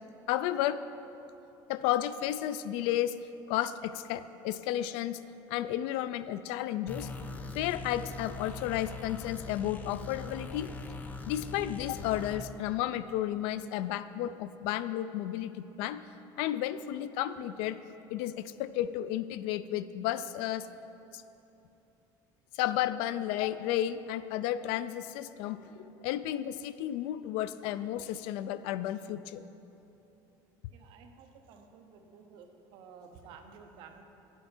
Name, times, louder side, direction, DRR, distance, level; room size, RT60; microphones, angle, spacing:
voice 1, 0.3-0.8 1.7-3.1 3.5-5.2 5.5-7.1 7.5-10.7 11.3-16.0 16.4-17.8 18.1-20.7 21.1-21.2 22.5-29.4, left 12 dB, 80° left, 14 dB, 0.4 m, -32 dB
sound 1, 6.9-12.4, left 3 dB, 15° left, 0.4 m, -41 dB
voice 2, 30.7-34.0, right 6 dB, 60° right, 5 dB, 0.8 m, -53 dB
9.8 x 8.1 x 4.4 m, 3.0 s
cardioid pair, 160°, 9 cm